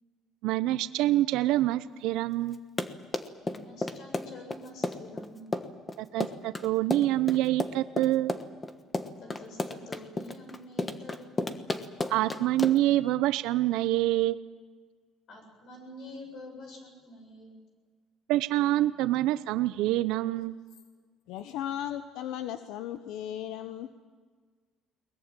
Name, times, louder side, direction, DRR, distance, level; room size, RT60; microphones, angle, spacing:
voice 1, 0.4-2.6 6.0-8.3 12.1-14.4 18.3-20.5, right 15 dB, 80° right, 13 dB, 0.7 m, -26 dB
Run, 2.5-13.0, left 2 dB, 15° left, 1.2 m, -33 dB
voice 2, 3.4-5.5 9.2-11.2 15.3-17.5, left 1 dB, 55° left, 3 dB, 7.7 m, -47 dB
voice 3, 21.3-23.9, left 11 dB, 85° left, 9 dB, 1.0 m, -36 dB
22.0 x 20.0 x 9.1 m, 1.6 s
cardioid pair, 150°, 0 cm